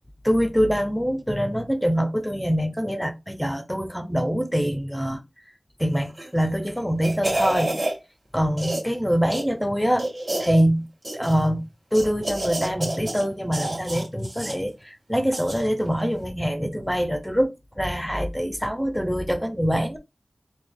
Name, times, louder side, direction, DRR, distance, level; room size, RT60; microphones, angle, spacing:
voice 1, 0.2-5.2 5.8-7.7 8.3-10.1 10.4-10.9 11.1-11.6 11.9-20.0, equal, 5° left, 0.7 m, -24 dB
sound 1, 6.1-6.4 6.8-8.0 8.6-8.9 9.3-9.4 10.0-10.6 11.0-11.5 11.9-13.2 13.5-14.6 15.3-15.7 16.0-16.1, right 1 dB, 50° right, 2.0 m, -28 dB
4.0 x 2.2 x 3.4 m
wide cardioid pair, 65°, 0 cm